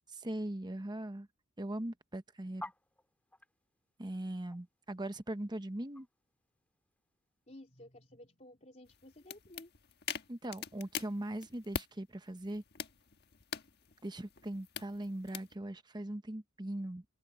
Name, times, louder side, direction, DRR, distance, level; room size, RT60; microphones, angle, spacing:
voice 1, 0.2-1.3 1.6-2.6 4.0-6.1 10.3-12.6 14.0-17.0, right 1 dB, 20° right, 0.9 m, -40 dB
sound 1, 2.6-7.2, left 1 dB, 5° left, 2.9 m, -51 dB
voice 2, 7.5-9.7, left 1 dB, 30° left, 3.5 m, -54 dB
sound 2, 8.8-11.9 12.4-15.5, left 7 dB, 50° left, 1.4 m, -44 dB
head